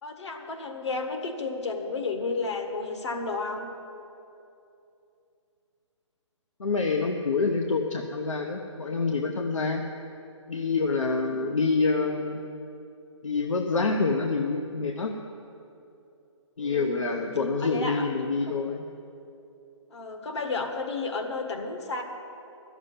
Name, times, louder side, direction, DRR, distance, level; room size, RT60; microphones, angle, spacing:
voice 1, 0.0-3.7 11.2-11.6 16.6-17.3 17.6-18.1 18.5-18.6 19.9-22.0, left 3 dB, 60° left, 3 dB, 1.7 m, -32 dB
voice 2, 6.6-9.9 10.5-12.4 13.2-15.2 16.6-18.8, left 4 dB, 75° left, 3 dB, 0.9 m, -27 dB
11.5 x 7.2 x 9.6 m, 2.7 s
hypercardioid pair, 150°, 16 cm